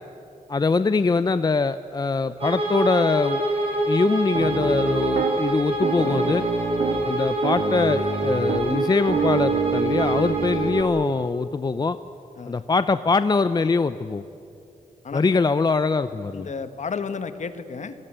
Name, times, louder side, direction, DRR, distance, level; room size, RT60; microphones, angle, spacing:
voice 1, 0.5-3.4 3.9-6.5 7.0-12.0 12.5-14.3 15.1-16.5, left 4 dB, 30° left, 12 dB, 0.5 m, -23 dB
Bowed string instrument, 2.4-10.9, right 1 dB, 40° right, 6.4 m, -26 dB
Piano, 4.3-5.3 5.8-7.1 7.4-10.8, right 6 dB, 90° right, 1.9 m, -27 dB
voice 2, 16.3-17.9, left 5 dB, 55° left, 10 dB, 1.5 m, -32 dB
27.5 x 19.5 x 8.9 m, 2.8 s
wide cardioid pair, 115°, 15 cm